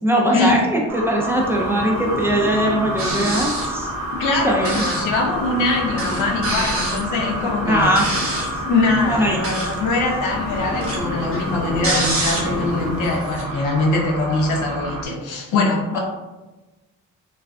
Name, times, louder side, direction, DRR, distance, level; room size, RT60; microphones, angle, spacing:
voice 1, 0.0-3.9 4.4-4.8 7.7-8.0 9.1-9.4, right 1 dB, 10° right, -2 dB, 0.4 m, -20 dB
sound 1, 0.9-15.1, right 1 dB, 90° right, 0.5 m, -30 dB
sound 2, 1.3-13.3, left 2 dB, 45° left, 0.6 m, -32 dB
sound 3, 3.0-3.8 4.6-5.1 5.5-5.6 6.0-8.6 9.3-9.9 10.2-12.7 13.0-13.4, right 2 dB, 50° right, 0.9 m, -26 dB
voice 2, 4.2-8.0 8.6-16.0, left 3 dB, 90° left, 0 dB, 0.6 m, -22 dB
2.4 x 2.3 x 2.3 m, 1.1 s
cardioid pair, 90°, 30 cm